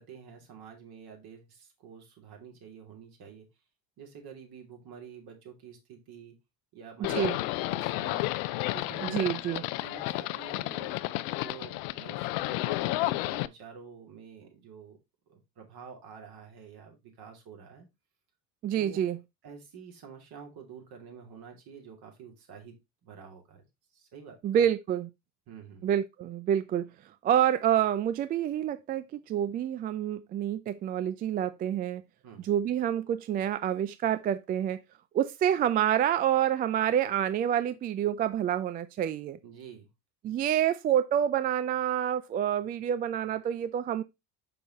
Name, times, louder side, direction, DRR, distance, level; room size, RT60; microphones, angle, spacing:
voice 1, 0.0-3.5 4.0-6.3 6.7-7.4 7.7-8.3 8.7-9.2 9.5-11.0 11.4-15.0 15.3-17.9 18.8-19.0 19.4-22.7 23.0-23.6 23.9-24.7 25.5-25.9 32.2-32.4 39.4-39.9, right 7 dB, 50° right, 2.9 m, -48 dB
Livestock farm animals working animals, 7.0-13.5, left 17 dB, 55° left, 0.6 m, -32 dB
voice 2, 9.0-9.6 18.6-19.2 24.4-25.1 25.8-26.9 27.2-32.0 32.4-34.8 35.1-39.4 40.2-44.0, right 10 dB, 20° right, 0.3 m, -28 dB
5.9 x 5.4 x 4.0 m
hypercardioid pair, 70°, 48 cm